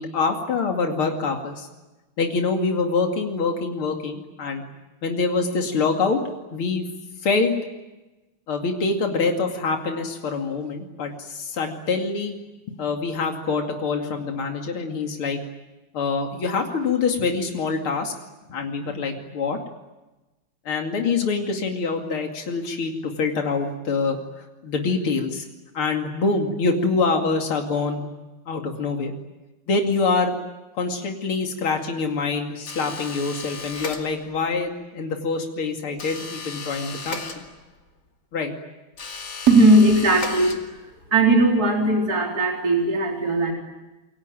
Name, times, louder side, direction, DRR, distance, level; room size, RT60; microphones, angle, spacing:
voice 1, 0.0-1.7 2.2-4.6 5.0-6.2 6.5-6.8 7.2-7.5 8.5-12.3 12.7-15.4 15.9-18.1 18.5-19.6 20.6-24.2 24.6-25.5 25.7-28.1 28.5-29.1 29.7-30.4 30.8-37.4 38.3-38.5, left 4 dB, 75° left, 3 dB, 3.4 m, -25 dB
sound 1, 32.7-34.5 36.0-37.9 38.9-41.0, left 4 dB, 50° left, 3.1 m, -36 dB
voice 2, 39.5-40.6 41.1-43.5, right 2 dB, 45° right, 1 dB, 4.3 m, -18 dB
28.0 x 23.5 x 9.2 m, 1.1 s
omnidirectional pair, 2.3 m